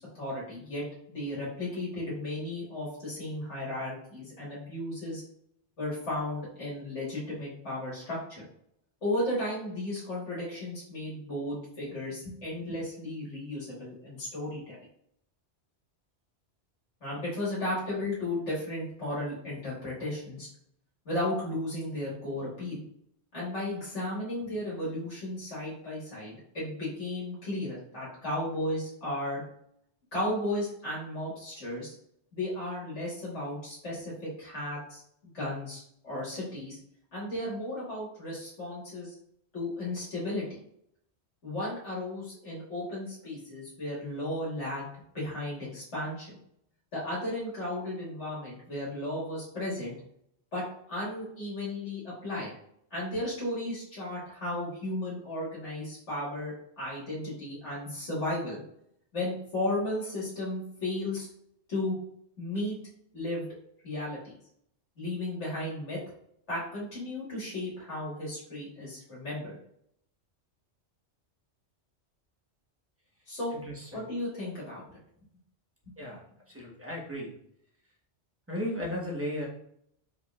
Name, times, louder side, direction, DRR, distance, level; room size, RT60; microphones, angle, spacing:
voice 1, 0.0-5.2 5.8-8.4 9.0-14.8 17.0-20.5 21.1-22.8 23.3-29.4 30.1-31.9 32.3-36.8 37.1-39.1 39.5-40.6 41.4-44.8 45.1-46.4 46.9-49.9 50.5-52.5 52.9-58.6 59.1-61.3 61.7-62.0 62.4-62.8 63.1-63.5 63.8-64.2 65.0-66.0 66.5-69.5 73.3-73.5 73.9-75.0, left 1 dB, 85° left, -8 dB, 2.2 m, -34 dB
voice 2, 73.5-74.0 76.0-77.3 78.5-79.5, equal, 10° right, -3 dB, 1.2 m, -35 dB
5.1 x 3.8 x 2.4 m, 0.70 s
omnidirectional pair, 1.2 m